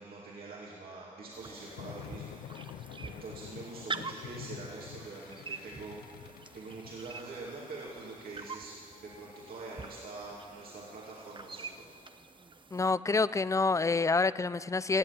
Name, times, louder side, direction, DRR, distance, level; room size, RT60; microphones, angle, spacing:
voice 1, 0.0-2.4 3.0-6.0 6.5-11.9, right 3 dB, 70° right, -5 dB, 2.5 m, -45 dB
sound 1, 0.9-5.8, left 2 dB, 35° left, 2.7 m, -61 dB
sound 2, 1.3-12.9, right 4 dB, 30° right, 0.7 m, -46 dB
sound 3, 1.6-12.2, left 12 dB, 80° left, 0.4 m, -50 dB
voice 2, 12.7-15.0, left 3 dB, 20° left, 17 dB, 0.4 m, -27 dB
17.5 x 7.6 x 8.6 m, 2.1 s
supercardioid pair, 45°, 16 cm